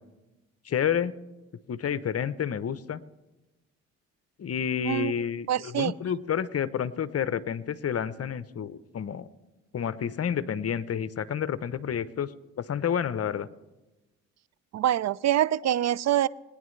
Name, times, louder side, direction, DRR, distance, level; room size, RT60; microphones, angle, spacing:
voice 1, 0.6-1.1 1.7-3.0 4.4-9.3 9.7-12.3 12.6-13.5, left 8 dB, 45° left, 16 dB, 0.8 m, -29 dB
voice 2, 5.5-5.9 14.7-16.3, right 12 dB, 50° right, 21 dB, 0.5 m, -25 dB
21.5 x 9.8 x 3.2 m, 1.1 s
supercardioid pair, 50°, 35 cm